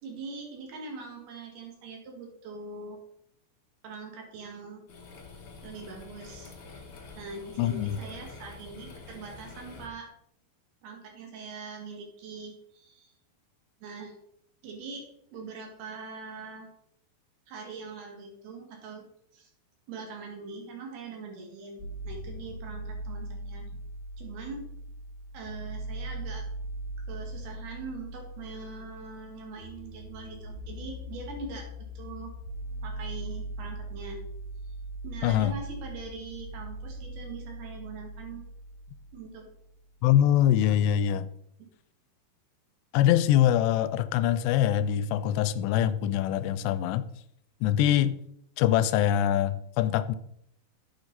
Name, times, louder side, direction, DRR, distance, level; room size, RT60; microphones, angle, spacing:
voice 1, 0.0-3.0 3.8-4.8 5.6-6.8 7.2-10.1 10.8-13.1 13.8-14.2 14.6-15.0 15.3-16.7 17.5-19.1 19.3-19.5 19.9-23.7 24.2-24.6 25.3-26.4 27.1-31.7 32.0-32.3 32.8-34.2 35.0-38.4 39.1-39.4, right 4 dB, 70° right, 1 dB, 3.9 m, -42 dB
sound 1, 4.9-9.9, left 4 dB, 55° left, 1.3 m, -47 dB
voice 2, 7.6-8.0 35.2-35.5 40.0-41.3 42.9-47.0 47.6-48.2 48.6-50.2, left 11 dB, 85° left, 13 dB, 2.8 m, -24 dB
sound 2, 21.8-39.7, right 1 dB, 20° right, 3.0 m, -40 dB
9.8 x 9.2 x 4.0 m, 0.72 s
omnidirectional pair, 4.8 m